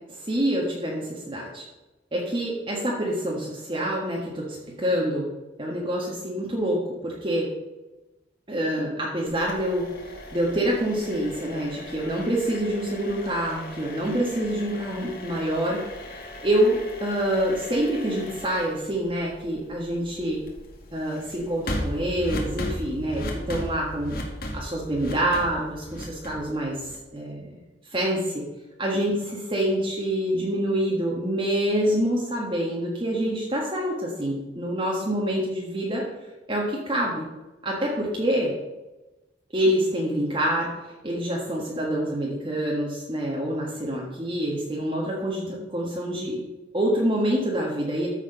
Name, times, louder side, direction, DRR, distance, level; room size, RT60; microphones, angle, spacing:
voice 1, 0.1-1.6 2.1-5.2 5.6-7.5 8.5-20.4 20.9-24.2 24.5-27.6 27.9-28.4 28.8-36.0 36.5-37.2 37.6-38.5 39.5-40.7 41.0-46.4 46.7-48.1, right 1 dB, 30° right, -4 dB, 1.5 m, -26 dB
sound 1, 9.3-27.2, left 1 dB, 55° left, 2.1 m, -37 dB
14.0 x 4.9 x 5.6 m, 1.1 s
head